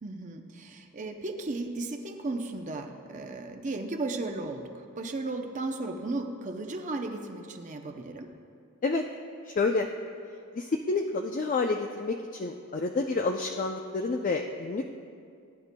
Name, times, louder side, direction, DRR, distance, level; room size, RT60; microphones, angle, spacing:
voice 1, 0.0-8.3, right 2 dB, 35° right, 4 dB, 0.6 m, -35 dB
voice 2, 9.4-9.9 10.5-14.8, left 3 dB, 40° left, 3 dB, 0.4 m, -29 dB
20.0 x 9.6 x 2.2 m, 2.4 s
head